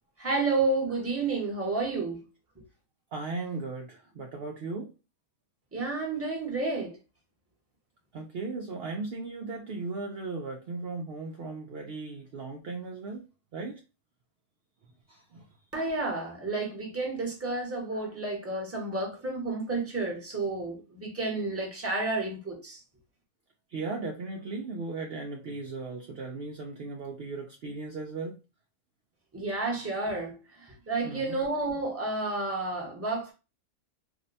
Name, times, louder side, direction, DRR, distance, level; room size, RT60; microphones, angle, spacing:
voice 1, 0.2-2.2 5.7-6.9 15.7-22.8 29.3-33.3, right 3 dB, 10° right, 0.8 m, -31 dB
voice 2, 3.1-4.9 8.1-13.2 13.5-13.8 15.1-15.4 23.7-28.4 31.0-31.4, right 3 dB, 75° right, 0.5 m, -37 dB
2.7 x 2.1 x 3.9 m
omnidirectional pair, 1.6 m